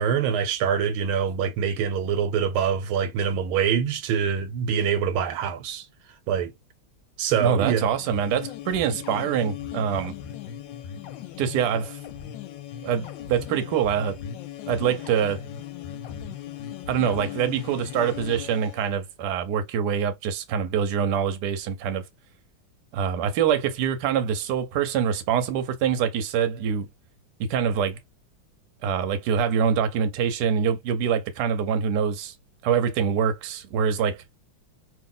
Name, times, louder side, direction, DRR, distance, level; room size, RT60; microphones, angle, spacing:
voice 1, 0.0-5.9 6.3-6.5 7.2-7.9, right 7 dB, 85° right, 1.5 m, -25 dB
voice 2, 7.4-10.1 11.4-12.0 12.8-14.2 14.7-15.4 16.9-22.0 22.9-26.9 27.4-28.0 28.8-32.3 32.6-34.2, right 7 dB, 65° right, 1.1 m, -25 dB
sound 1, 7.9-18.9, left 10 dB, 75° left, 1.2 m, -38 dB
3.0 x 2.8 x 3.7 m
omnidirectional pair, 2.2 m